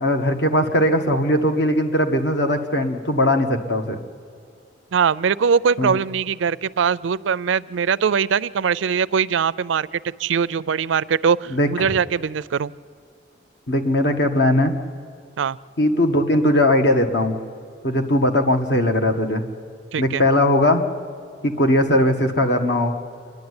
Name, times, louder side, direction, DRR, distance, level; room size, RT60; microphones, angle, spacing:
voice 1, 0.0-4.0 5.8-5.9 11.5-11.9 13.7-14.7 15.8-17.4 17.8-19.4 20.0-20.8 21.4-22.9, left 1 dB, 60° left, 5 dB, 1.6 m, -19 dB
voice 2, 4.9-12.7 15.4-15.6 19.9-20.2, right 6 dB, 80° right, 19 dB, 0.4 m, -21 dB
27.5 x 11.0 x 9.7 m, 2.4 s
head